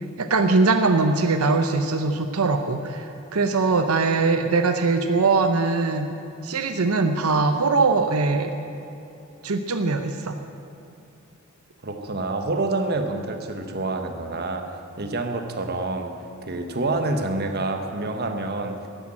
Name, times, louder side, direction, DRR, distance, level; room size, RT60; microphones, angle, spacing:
voice 1, 0.2-6.1 6.4-8.5 9.4-10.4, right 3 dB, 85° right, 7 dB, 0.8 m, -21 dB
voice 2, 11.8-14.7 15.0-16.1 16.5-18.8, right 2 dB, 45° right, 6 dB, 1.2 m, -27 dB
13.5 x 10.5 x 8.8 m, 2.8 s
head